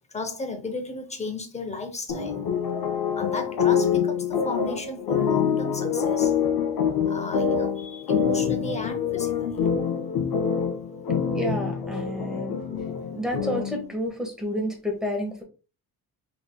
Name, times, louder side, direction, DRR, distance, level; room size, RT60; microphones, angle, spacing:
voice 1, 0.1-2.5 3.2-6.3 7.1-9.6, left 3 dB, 15° left, 0.6 m, -34 dB
sound 1, 2.1-13.9, left 7 dB, 65° left, 1.4 m, -26 dB
voice 2, 11.3-12.6 13.1-15.4, equal, ahead, 1.3 m, -30 dB
5.7 x 3.6 x 2.2 m
cardioid pair, 175°, 39 cm